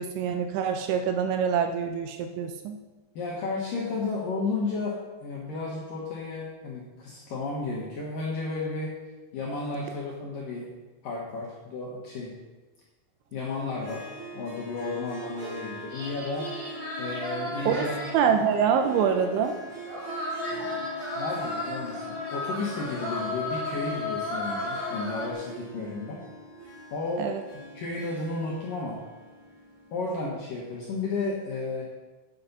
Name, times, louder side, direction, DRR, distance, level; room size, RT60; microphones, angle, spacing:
voice 1, 0.0-2.8 17.7-17.9 18.1-19.5 27.2-27.4, right 7 dB, 80° right, 6 dB, 2.8 m, -25 dB
voice 2, 3.1-8.9 9.3-10.7 11.0-12.3 13.3-14.1 14.3-16.5 17.0-18.0 20.5-20.9 21.2-26.2 26.9-27.3 27.7-29.0 29.9-31.8, left 3 dB, 70° left, -4 dB, 2.1 m, -33 dB
Harp, 13.7-30.2, right 1 dB, 60° right, 5.4 m, -42 dB
sound 1, 15.9-25.3, left 2 dB, 40° right, 0.7 m, -35 dB
8.6 x 8.1 x 5.4 m, 1.2 s
omnidirectional pair, 5.7 m